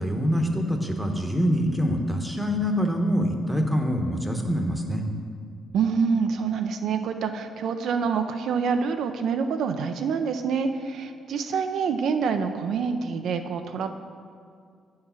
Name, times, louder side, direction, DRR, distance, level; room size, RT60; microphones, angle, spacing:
voice 1, 0.0-5.0, equal, ahead, 3 dB, 0.9 m, -25 dB
voice 2, 5.7-13.9, right 5 dB, 70° right, 7 dB, 0.4 m, -26 dB
8.5 x 4.7 x 5.6 m, 2.2 s
cardioid pair, 90°, 0 cm